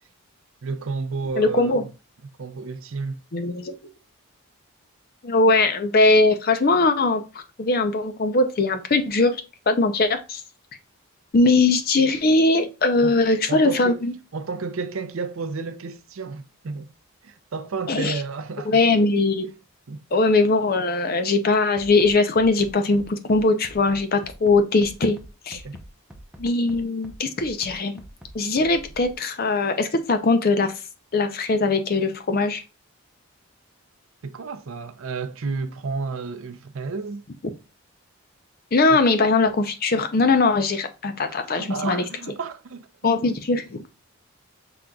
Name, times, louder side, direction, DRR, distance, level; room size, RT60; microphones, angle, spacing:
voice 1, 0.6-1.9 2.4-3.2 13.0-13.2 13.5-14.0 14.3-16.9 17.2-18.8 19.9-20.0 25.5-25.8 34.2-37.2 38.9-39.0 41.4-43.2, right 4 dB, 65° right, 0.5 m, -31 dB
voice 2, 1.3-1.9 3.3-3.7 5.2-10.4 11.3-14.1 17.9-18.2 18.7-19.5 20.1-25.2 25.5-25.6 26.4-27.9 28.3-30.8 31.1-32.6 37.4-37.5 38.7-42.1 43.0-43.8, left 3 dB, 40° left, 0.5 m, -20 dB
Bass drum, 21.8-29.1, right 1 dB, 5° right, 0.6 m, -44 dB
6.0 x 3.9 x 2.3 m
head